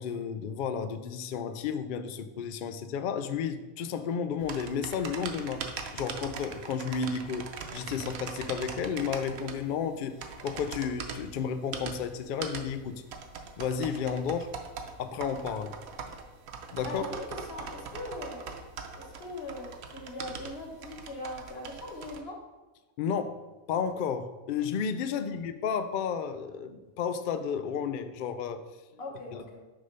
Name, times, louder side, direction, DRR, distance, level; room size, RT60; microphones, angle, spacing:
voice 1, 0.0-5.7 5.9-13.0 13.6-14.5 15.0-15.7 16.7-17.1 23.0-23.4 23.7-28.6, left 6 dB, 80° left, 10 dB, 0.4 m, -32 dB
sound 1, 4.4-22.2, right 5 dB, 85° right, 1.1 m, -41 dB
voice 2, 16.8-18.4 19.0-22.4 25.1-25.4 29.0-29.6, left 1 dB, 50° left, 0 dB, 1.4 m, -40 dB
6.5 x 3.6 x 5.4 m, 1.1 s
omnidirectional pair, 1.4 m